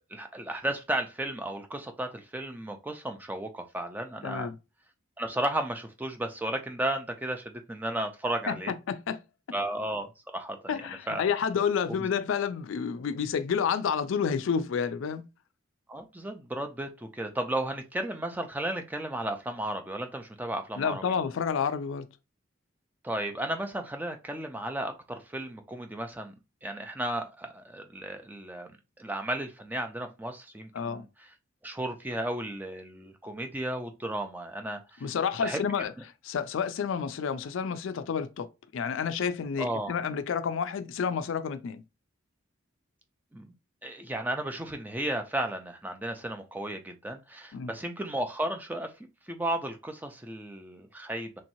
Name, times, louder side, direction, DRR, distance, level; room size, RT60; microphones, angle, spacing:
voice 1, 0.1-4.5 5.2-8.7 9.5-10.6 11.1-11.2 11.9-12.0 15.9-21.0 23.0-26.3 26.6-31.3 31.6-35.1 35.4-35.6 39.6-40.0 43.3-43.5 43.8-48.9 49.3-51.4, right 1 dB, 10° right, 0.4 m, -34 dB
voice 2, 4.2-4.6 8.5-8.6 8.9-9.2 10.7-15.3 20.8-22.1 30.7-31.0 35.0-35.9 36.2-38.5 38.7-41.8 47.5-47.7, left 6 dB, 70° left, 0.3 m, -29 dB
3.1 x 2.9 x 2.6 m
head